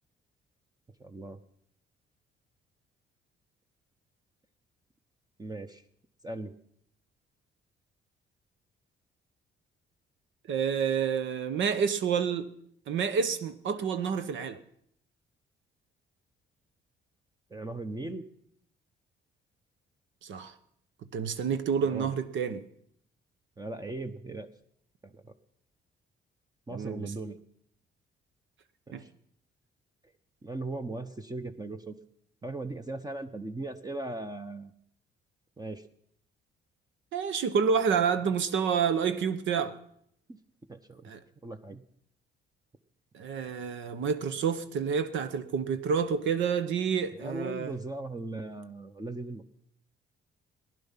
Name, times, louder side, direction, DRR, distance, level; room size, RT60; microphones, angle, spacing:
voice 1, 1.0-1.4 5.4-5.8 6.2-6.5 17.5-18.2 21.9-22.1 23.6-24.5 25.0-25.3 26.7-27.4 28.9-29.1 30.4-32.0 32.4-34.7 35.6-35.8 40.3-40.4 40.7-41.1 41.4-41.8 47.2-49.4, right 2 dB, 20° right, 0.8 m, -38 dB
voice 2, 10.5-12.5 12.9-14.6 20.2-20.5 21.1-22.7 26.7-27.1 28.9-29.0 37.1-39.8 41.0-41.2 43.1-47.7, right 6 dB, 70° right, 1.0 m, -29 dB
15.5 x 11.0 x 5.7 m
cardioid pair, 90°, 20 cm